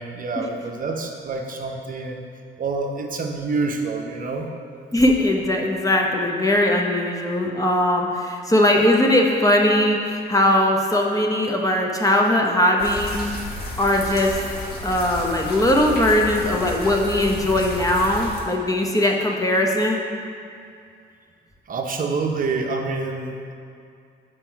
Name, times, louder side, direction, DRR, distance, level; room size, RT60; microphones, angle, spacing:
voice 1, 0.0-2.2 2.6-4.5 21.7-23.5, right 3 dB, 45° right, 2 dB, 0.7 m, -27 dB
voice 2, 4.9-13.2 13.8-14.4 14.8-20.0, left 1 dB, 15° left, 0 dB, 0.8 m, -20 dB
sound 1, 12.8-18.4, left 1 dB, 50° left, 1.3 m, -32 dB
5.9 x 4.6 x 4.6 m, 2.4 s
cardioid pair, 90°, 20 cm